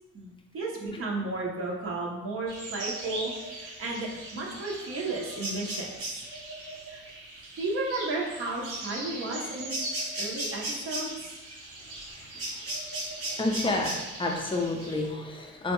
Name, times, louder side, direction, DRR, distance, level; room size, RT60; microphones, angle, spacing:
voice 1, 0.1-6.2 6.9-7.0 7.6-9.8 10.2-11.3, right 2 dB, 45° right, -2 dB, 0.7 m, -33 dB
sound 1, 2.5-15.1, right 1 dB, 85° right, 1.0 m, -38 dB
voice 2, 11.8-12.7 13.3-15.7, left 2 dB, 15° left, 1 dB, 0.5 m, -31 dB
3.4 x 2.2 x 3.0 m, 1.1 s
cardioid pair, 90°, 30 cm